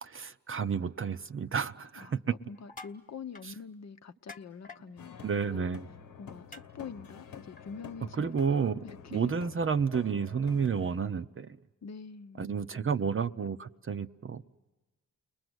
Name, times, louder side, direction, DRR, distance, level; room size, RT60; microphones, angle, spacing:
voice 1, 0.0-2.2 5.2-5.9 8.2-8.8 9.1-11.5 12.4-14.4, right 6 dB, 40° right, 0.8 m, -31 dB
voice 2, 2.0-5.2 5.5-5.7 6.2-9.3 11.8-12.5, left 6 dB, 50° left, 0.8 m, -45 dB
sound 1, 2.5-3.0 3.3-3.5 4.3-4.8 6.5-6.6 7.6-7.7, left 3 dB, 25° left, 1.3 m, -47 dB
sound 2, 5.0-11.0, left 7 dB, 80° left, 1.2 m, -49 dB
29.5 x 21.0 x 8.0 m
cardioid pair, 65°, 34 cm